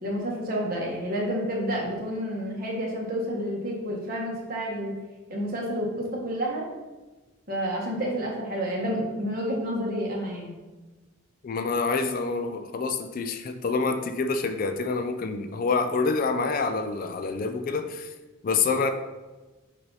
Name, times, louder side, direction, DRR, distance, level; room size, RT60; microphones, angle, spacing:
voice 1, 0.0-4.9 5.3-6.6 7.5-10.5, equal, 45° right, -2 dB, 1.4 m, -29 dB
voice 2, 11.4-18.1 18.4-18.9, left 4 dB, 45° left, 7 dB, 0.4 m, -27 dB
6.8 x 2.7 x 5.5 m, 1.2 s
head